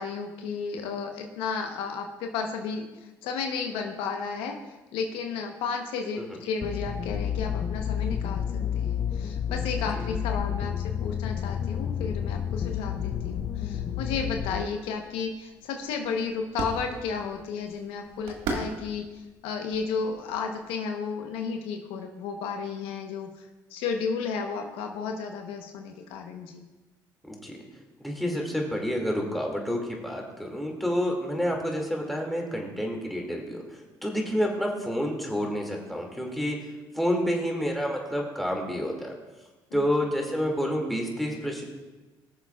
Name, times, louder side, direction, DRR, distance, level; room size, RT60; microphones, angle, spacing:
voice 1, 0.0-2.8 3.2-4.5 4.9-26.7 39.7-39.8, left 5 dB, 85° left, 3 dB, 1.0 m, -33 dB
sound 1, 6.6-14.6, left 8 dB, 40° left, 0.4 m, -30 dB
sound 2, 14.4-20.7, right 3 dB, 85° right, 1.5 m, -40 dB
voice 2, 27.3-27.6 28.0-36.6 36.9-39.1 39.7-41.6, equal, ahead, -1 dB, 2.3 m, -29 dB
20.5 x 7.1 x 2.4 m, 1.1 s
supercardioid pair, 75°, 9 cm